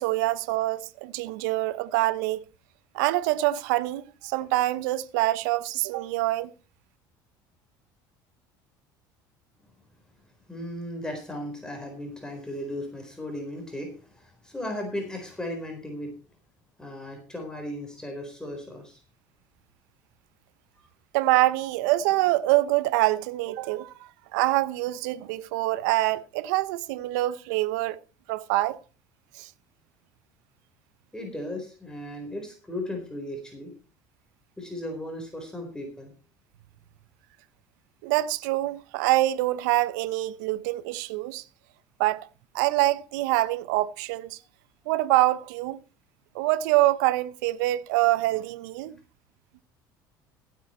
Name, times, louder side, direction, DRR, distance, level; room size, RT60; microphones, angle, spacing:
voice 1, 0.0-2.4 2.9-6.5 21.1-28.0 28.3-28.8 29.4-29.5 38.0-41.4 42.0-42.3 42.5-44.4 44.9-45.8 46.3-49.0, right 17 dB, 80° right, 0.7 m, -25 dB
voice 2, 10.5-16.1 16.8-19.0 31.1-33.7 34.6-36.1, left 1 dB, 5° left, 4.2 m, -36 dB
15.5 x 8.4 x 4.3 m
supercardioid pair, 85°, 10 cm